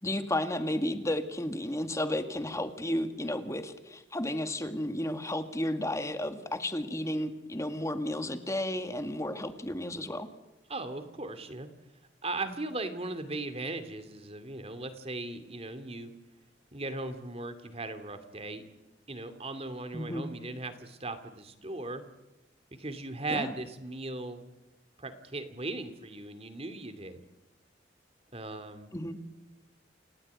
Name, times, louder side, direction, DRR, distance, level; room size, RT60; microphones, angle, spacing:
voice 1, 0.0-10.3 19.9-20.3 23.3-23.6 28.9-29.2, left 1 dB, 15° left, 8 dB, 2.0 m, -33 dB
voice 2, 10.7-11.7 12.2-16.1 16.7-18.6 19.1-22.0 22.8-24.5 25.0-27.2 28.3-28.9, right 2 dB, 35° right, 9 dB, 2.7 m, -38 dB
29.0 x 17.5 x 9.6 m, 0.98 s
head